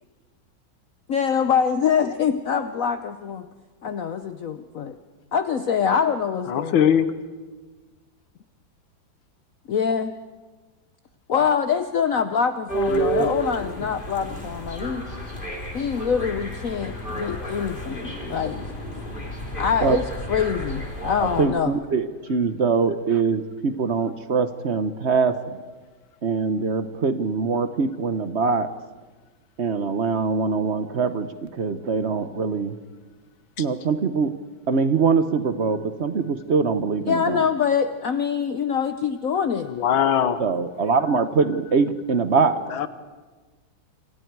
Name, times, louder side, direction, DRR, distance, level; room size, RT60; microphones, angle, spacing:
voice 1, 1.1-3.5 3.8-5.0 5.3-6.9 9.7-10.1 11.3-15.0 15.7-18.6 19.5-20.0 20.3-21.7 37.1-39.7, left 7 dB, 55° left, 9 dB, 1.0 m, -24 dB
voice 2, 6.5-7.1 12.9-13.3 33.6-33.7 39.7-40.4 42.7-42.9, left 9 dB, 80° left, 11 dB, 1.8 m, -21 dB
sound 1, 12.7-21.4, right 1 dB, 25° left, 3.7 m, -31 dB
voice 3, 21.2-25.6 26.2-28.7 29.6-32.7 33.6-34.3 34.7-37.5 40.4-42.6, right 5 dB, 50° right, 10 dB, 0.9 m, -23 dB
27.5 x 26.0 x 4.7 m, 1.3 s
omnidirectional pair, 2.1 m